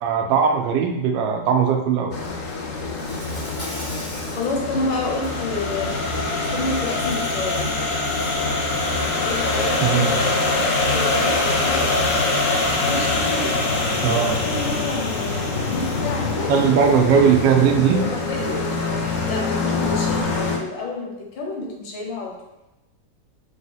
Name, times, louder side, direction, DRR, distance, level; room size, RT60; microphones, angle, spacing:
voice 1, 0.0-2.2 9.8-10.2 14.0-14.4 16.5-18.1, right 7 dB, 80° right, 4 dB, 1.3 m, -19 dB
sound 1, 2.1-20.6, left 3 dB, 60° left, 0.8 m, -24 dB
Insect, 2.8-4.5 5.0-5.3 6.5-8.4, left 1 dB, 15° left, 0.6 m, -39 dB
voice 2, 4.3-6.1 6.5-7.8 9.2-11.9 12.9-13.7 14.4-17.2 17.9-18.6 19.2-22.4, left 2 dB, 85° left, 0 dB, 1.6 m, -29 dB
3.7 x 2.7 x 3.9 m, 0.96 s
omnidirectional pair, 2.0 m